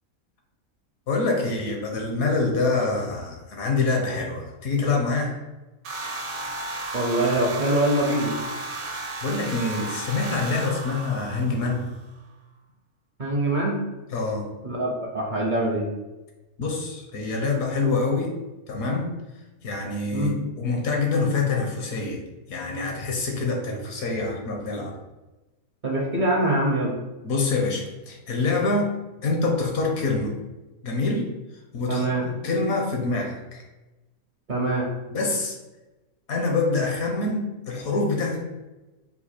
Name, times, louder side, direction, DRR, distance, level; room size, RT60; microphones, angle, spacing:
voice 1, 1.1-5.4 9.2-11.9 14.1-14.5 16.6-18.3 18.7-19.1 19.6-22.2 22.5-25.0 27.2-28.9 29.2-30.3 30.8-31.3 31.7-33.6 35.1-35.6 36.3-38.5, left 3 dB, 70° left, 1 dB, 1.2 m, -26 dB
sound 1, 5.8-12.0, right 2 dB, 70° right, 1.1 m, -34 dB
voice 2, 6.9-8.4 13.2-13.8 14.6-15.9 20.1-20.4 25.8-26.9 31.9-32.3 34.5-34.9, right 1 dB, 50° right, -3 dB, 0.6 m, -24 dB
4.1 x 2.5 x 4.3 m, 1.1 s
omnidirectional pair, 1.6 m